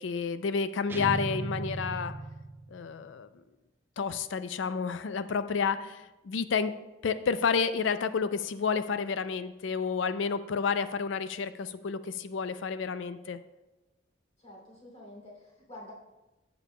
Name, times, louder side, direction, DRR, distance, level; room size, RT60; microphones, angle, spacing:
voice 1, 0.0-2.1 2.7-3.3 4.0-6.7 7.0-13.4, left 5 dB, 80° left, 12 dB, 0.4 m, -30 dB
sound 1, 0.9-2.9, right 2 dB, 10° right, 0.5 m, -36 dB
voice 2, 14.4-15.9, left 1 dB, 35° left, -2 dB, 2.8 m, -48 dB
13.0 x 7.0 x 2.2 m, 1.1 s
head